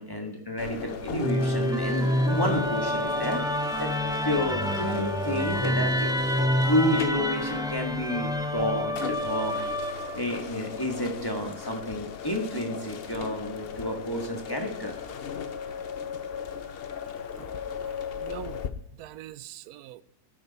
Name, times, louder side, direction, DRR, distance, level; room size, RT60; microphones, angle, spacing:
voice 1, 0.0-3.4 3.8-3.9 4.2-6.1 6.6-9.6 10.1-14.9, equal, 15° left, 1.6 m, -30 dB
sound 1, 0.6-18.7, left 7 dB, 50° left, 0.7 m, -37 dB
Musical instrument, 1.2-10.4, equal, 5° right, 0.4 m, -28 dB
voice 2, 17.8-18.6 19.0-20.0, right 13 dB, 75° right, 1.1 m, -43 dB
11.5 x 10.0 x 4.2 m
omnidirectional pair, 1.7 m